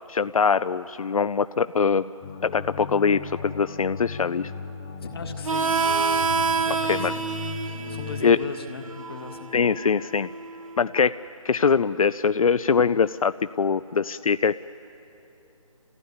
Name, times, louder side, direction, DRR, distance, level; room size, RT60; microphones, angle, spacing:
voice 1, 0.1-2.1 2.4-4.5 6.9-7.1 8.2-8.4 9.5-10.3 10.8-11.1 11.4-14.5, left 6 dB, 85° left, 13 dB, 0.5 m, -22 dB
sound 1, 2.2-8.2, left 6 dB, 10° left, 0.4 m, -37 dB
voice 2, 5.0-6.1 6.5-7.2 7.9-9.5, left 4 dB, 45° left, 5 dB, 1.7 m, -38 dB
Harmonica, 5.4-10.7, right 5 dB, 75° right, 1.2 m, -28 dB
26.0 x 15.5 x 9.5 m, 3.0 s
figure-of-eight pair, 165°, 17 cm